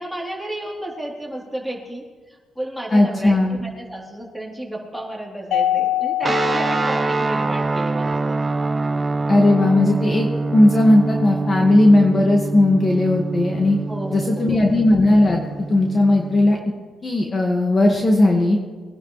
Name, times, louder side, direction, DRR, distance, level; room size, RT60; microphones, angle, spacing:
voice 1, 0.0-8.4 13.9-14.7, right 1 dB, ahead, -2 dB, 3.5 m, -32 dB
voice 2, 2.9-3.6 9.3-10.3 10.5-13.8 14.1-15.4 15.7-16.6 17.0-18.6, left 1 dB, 30° left, 0 dB, 1.8 m, -16 dB
Mallet percussion, 5.5-7.9, left 12 dB, 80° left, 0.6 m, -25 dB
sound 1, 6.2-16.6, right 3 dB, 25° right, 0.4 m, -25 dB
23.0 x 11.0 x 3.3 m, 1.4 s
cardioid pair, 90°, 0 cm